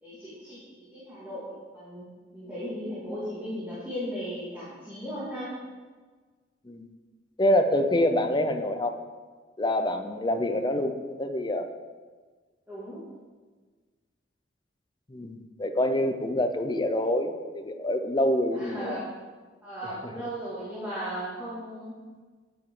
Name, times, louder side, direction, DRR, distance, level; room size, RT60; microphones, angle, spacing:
voice 1, 0.0-2.0 2.3-5.6 12.7-13.0 18.5-19.1 19.6-21.9, equal, 10° right, -11 dB, 2.3 m, -36 dB
voice 2, 7.4-9.0 9.6-10.9 11.2-11.7 15.1-19.0, left 1 dB, 25° left, 6 dB, 0.6 m, -26 dB
8.9 x 7.6 x 3.8 m, 1.4 s
head